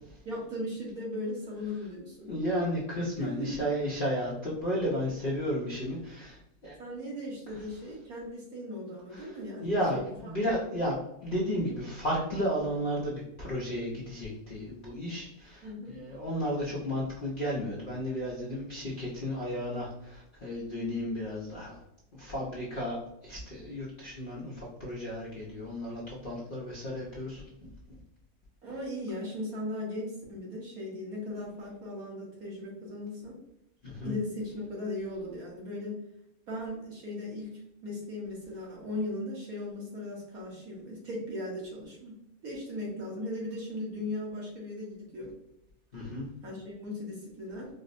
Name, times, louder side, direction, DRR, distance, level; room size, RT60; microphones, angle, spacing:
voice 1, 0.2-2.3 3.2-3.7 6.8-10.1 15.6-16.0 28.6-33.4 34.0-35.9 36.5-37.5 37.8-42.1 42.4-45.3 46.4-47.7, left 1 dB, 65° right, -4 dB, 1.6 m, -37 dB
voice 2, 2.2-6.7 7.5-7.6 9.1-11.0 11.2-21.8 22.1-23.0 23.2-28.0 33.8-34.1 45.9-46.3, equal, 50° left, -7 dB, 0.6 m, -33 dB
4.5 x 2.1 x 2.5 m, 0.80 s
omnidirectional pair, 1.7 m